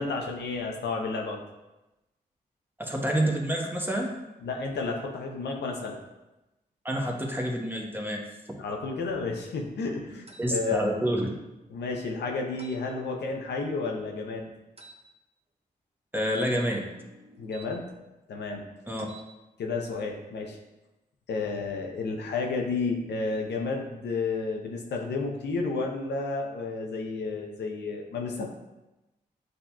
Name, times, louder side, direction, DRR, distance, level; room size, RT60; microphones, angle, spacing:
voice 1, 0.0-1.4 4.4-6.0 8.6-11.0 11.7-14.5 17.4-17.9 18.3-18.6 19.6-20.6 21.3-28.5, left 3 dB, 80° left, 1 dB, 0.6 m, -31 dB
voice 2, 2.8-4.1 6.8-8.2 10.4-11.3 16.1-16.9 18.9-19.1, equal, 10° right, 0 dB, 1.0 m, -28 dB
sound 1, 10.3-10.5 12.6-12.8 14.8-15.0 16.3-17.7 18.9-19.3, right 2 dB, 35° right, 0.7 m, -50 dB
7.7 x 2.8 x 2.3 m, 1.0 s
supercardioid pair, 40°, 18 cm